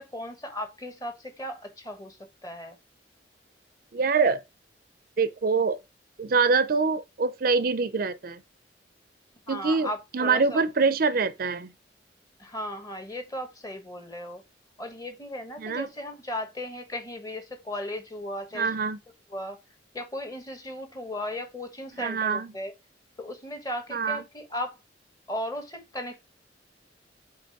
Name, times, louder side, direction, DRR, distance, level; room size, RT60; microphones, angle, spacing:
voice 1, 0.0-2.2 2.4-2.7 9.5-10.6 12.4-14.4 14.8-18.7 19.3-19.6 19.9-22.7 23.2-24.8 25.3-26.2, left 1 dB, 20° left, 1.3 m, -36 dB
voice 2, 3.9-4.4 5.2-5.8 6.2-8.4 9.5-11.7 15.6-15.9 18.5-19.0 22.0-22.5 23.9-24.2, right 4 dB, 50° right, 0.5 m, -25 dB
5.1 x 4.2 x 4.7 m
head